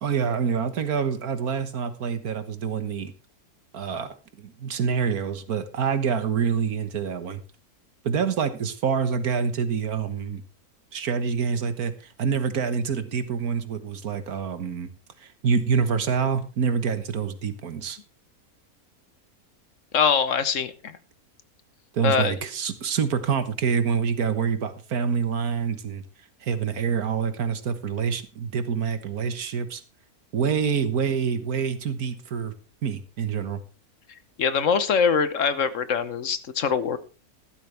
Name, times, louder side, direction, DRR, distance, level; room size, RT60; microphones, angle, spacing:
voice 1, 0.0-3.1 3.7-7.4 8.0-10.4 10.9-11.9 12.2-14.9 15.2-18.0 21.9-26.0 26.4-29.8 30.3-32.5 32.8-33.6, right 6 dB, 75° right, 11 dB, 1.8 m, -26 dB
voice 2, 19.9-21.0 22.0-22.4 34.4-37.0, left 6 dB, 60° left, 13 dB, 1.3 m, -23 dB
14.0 x 12.0 x 3.4 m, 0.32 s
omnidirectional pair, 1.6 m